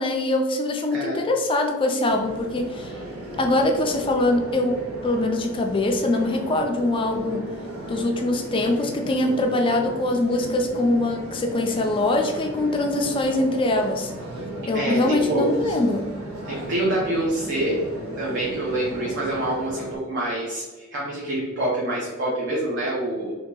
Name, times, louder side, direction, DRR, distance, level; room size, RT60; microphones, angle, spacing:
voice 1, 0.0-2.9 3.4-7.4 7.9-14.1 14.7-16.1, left 2 dB, 25° left, 3 dB, 0.3 m, -23 dB
voice 2, 0.9-1.2 14.7-15.7 16.5-17.8 18.2-23.4, right 1 dB, 55° right, -5 dB, 0.8 m, -26 dB
sound 1, 2.1-20.0, right 1 dB, 80° right, 1.0 m, -36 dB
2.8 x 2.7 x 3.7 m, 1.2 s
head